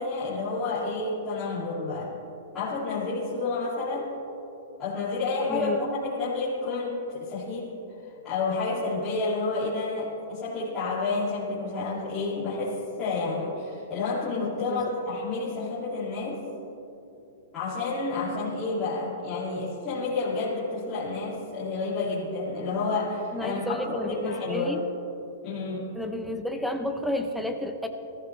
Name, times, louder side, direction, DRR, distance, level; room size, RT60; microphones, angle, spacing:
voice 1, 0.0-2.1 2.5-4.2 4.8-7.7 8.2-16.4 17.5-24.8 25.4-25.9, left 3 dB, 15° left, -12 dB, 2.5 m, -30 dB
voice 2, 14.5-14.9 23.3-24.8 25.9-27.9, left 1 dB, ahead, 4 dB, 0.6 m, -31 dB
20.0 x 14.5 x 3.2 m, 2.9 s
supercardioid pair, 175°, 0 cm